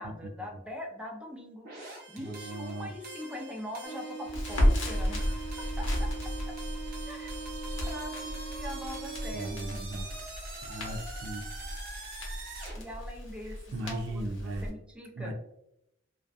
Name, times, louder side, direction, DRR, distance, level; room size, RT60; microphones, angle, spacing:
voice 1, 0.0-6.1 6.5-6.6 7.1-7.3 7.6-9.7 12.7-13.6 13.8-15.3, left 1 dB, 5° right, 0 dB, 0.5 m, -42 dB
sound 1, 1.6-12.8, right 1 dB, 50° right, 0.7 m, -44 dB
voice 2, 2.2-2.9 9.3-10.1 10.6-11.5 13.5-14.7 15.2-15.3, right 1 dB, 65° right, 5 dB, 0.3 m, -37 dB
sound 2, 3.8-9.8, right 6 dB, 30° right, 1.1 m, -43 dB
Crackle, 4.3-14.7, equal, 65° left, 0.8 m, -33 dB
2.5 x 2.2 x 2.3 m, 0.81 s
head